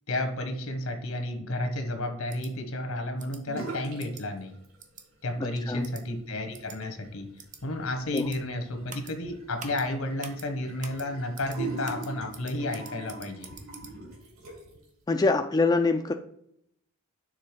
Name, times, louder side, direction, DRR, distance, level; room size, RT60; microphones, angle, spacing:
voice 1, 0.1-4.5 5.2-7.3 7.6-13.5, left 1 dB, 75° left, 6 dB, 1.3 m, -32 dB
sound 1, 2.3-2.5 3.2-3.4 4.0-4.2 4.8-5.0 5.8-6.0 6.5-6.8 7.4-7.6 8.1-8.4 8.9-9.1 9.6-9.8 10.2-10.5 10.8-11.1 11.3-11.6 11.8-13.9, right 6 dB, 35° right, 0.8 m, -45 dB
sound 2, 3.5-4.1 4.3-5.0 5.4-14.8, right 3 dB, 75° right, 2.7 m, -42 dB
voice 2, 15.1-16.1, left 3 dB, 20° left, 6 dB, 0.3 m, -24 dB
6.6 x 3.8 x 5.1 m, 0.71 s
head